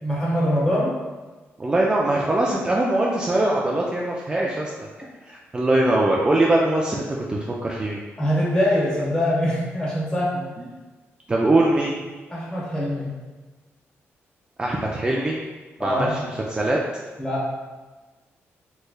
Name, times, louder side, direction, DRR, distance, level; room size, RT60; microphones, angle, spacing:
voice 1, 0.0-0.9 8.2-10.5 12.3-13.1 15.8-16.1 17.2-17.7, equal, 20° left, -7 dB, 1.2 m, -23 dB
voice 2, 1.6-4.9 5.3-8.0 11.3-11.9 14.6-15.4 15.8-16.8, right 1 dB, 20° right, -3 dB, 0.3 m, -22 dB
3.2 x 3.1 x 2.3 m, 1.3 s
cardioid pair, 110°, 5 cm